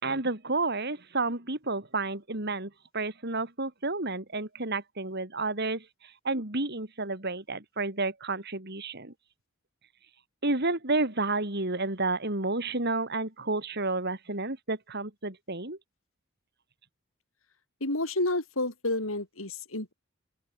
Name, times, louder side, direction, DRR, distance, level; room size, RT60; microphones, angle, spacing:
voice 1, 0.0-5.9 6.2-9.1 10.4-15.8, right 3 dB, 50° right, 3.7 m, -31 dB
voice 2, 17.8-19.9, left 2 dB, 75° left, 5.2 m, -30 dB
open air
head